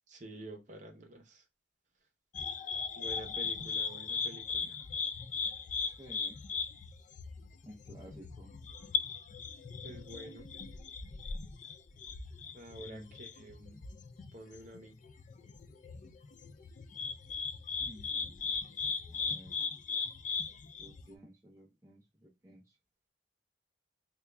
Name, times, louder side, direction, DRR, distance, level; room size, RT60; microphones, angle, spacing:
voice 1, 0.1-1.4 3.0-4.8 9.8-10.5 12.5-13.8 14.3-15.0, right 1 dB, 45° right, 3 dB, 0.8 m, -48 dB
sound 1, 2.3-21.1, left 5 dB, 40° left, 0.3 m, -38 dB
voice 2, 6.0-6.4 7.6-8.5 12.8-13.8 17.8-18.7 19.1-19.6 20.8-22.7, equal, 15° right, -3 dB, 0.5 m, -54 dB
3.4 x 2.3 x 3.3 m, 0.23 s
head